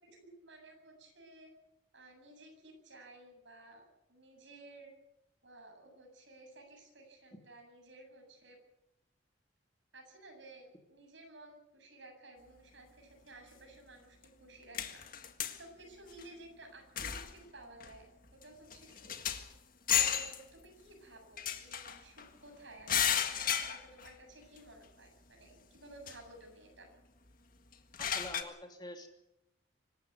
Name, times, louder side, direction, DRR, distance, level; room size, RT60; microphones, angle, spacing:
voice 1, 0.0-1.5 1.9-4.9 5.4-8.6 9.9-15.1 15.6-19.2 19.9-26.9, right 2 dB, 70° right, 2 dB, 7.9 m, -55 dB
sound 1, 14.2-14.3 14.7-15.6 16.1-16.2 17.0-17.4 17.8-18.0 18.4-18.5 18.7-19.5 19.9-20.4 21.4-22.3 22.9-24.1 24.6-24.7 26.1-26.2 27.7-28.4, left 9 dB, 45° left, 1.8 m, -33 dB
voice 2, 28.0-29.1, left 1 dB, 20° left, 4 dB, 2.8 m, -46 dB
25.5 x 13.5 x 9.5 m, 0.87 s
head